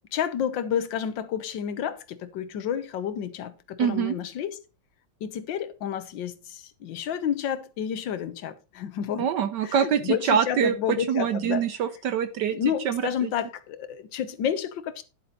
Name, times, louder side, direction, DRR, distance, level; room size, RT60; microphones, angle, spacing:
voice 1, 0.1-4.6 5.2-9.3 9.6-11.6 12.5-15.0, left 9 dB, 70° left, 1.7 m, -30 dB
voice 2, 3.8-4.1 9.2-12.6 12.8-13.3, right 8 dB, 70° right, 1.2 m, -25 dB
10.5 x 7.7 x 4.0 m
omnidirectional pair, 2.2 m